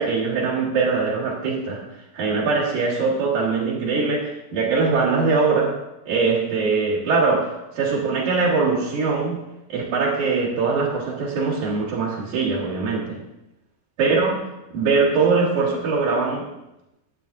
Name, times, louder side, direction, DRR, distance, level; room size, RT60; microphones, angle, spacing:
voice 1, 0.0-1.8 2.1-5.7 6.1-9.4 9.7-13.2 14.0-14.4 14.7-16.5, right 4 dB, 65° right, -8 dB, 3.1 m, -22 dB
12.5 x 8.2 x 2.7 m, 0.91 s
omnidirectional pair, 3.8 m